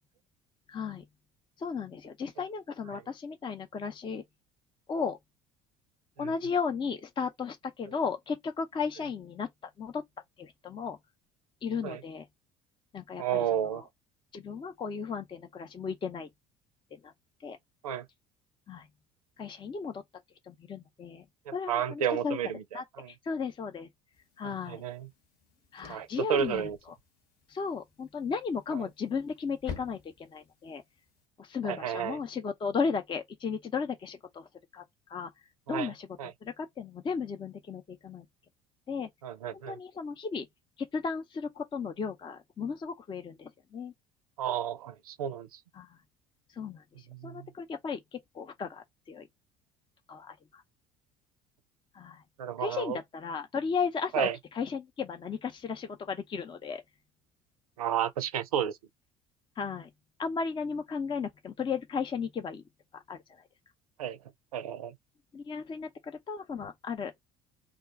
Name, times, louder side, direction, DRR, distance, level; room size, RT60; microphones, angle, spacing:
voice 1, 0.7-1.1 1.6-4.2 4.9-5.2 6.2-9.5 9.8-10.0 10.4-11.0 11.6-12.3 12.9-13.8 14.3-16.3 16.9-17.1 17.4-17.6 18.7-18.9 19.4-20.0 20.5-21.2 21.5-22.4 22.7-23.9 24.4-24.8 25.7-26.7 27.5-30.8 31.4-34.5 34.7-34.8 35.1-35.3 35.7-36.1 36.4-38.3 38.9-39.1 39.7-40.5 40.9-43.9 45.7-45.9 46.5-49.3 50.1-50.6 51.9-52.2 52.6-56.8 59.6-59.9 60.2-62.6 63.1-63.2 65.3-67.1, left 5 dB, 25° left, 0.6 m, -35 dB
voice 2, 13.2-13.8 17.8-18.0 21.5-23.1 24.4-25.1 25.9-26.8 31.6-32.2 35.7-35.9 36.2-36.3 39.2-39.8 44.4-45.5 47.2-47.5 52.4-53.0 54.1-54.4 57.8-58.8 64.0-64.2 64.5-64.9, right 9 dB, 80° right, 0.4 m, -32 dB
sound 1, 24.1-31.3, left 6 dB, 55° left, 1.0 m, -50 dB
2.4 x 2.2 x 3.8 m
figure-of-eight pair, 60°, 18 cm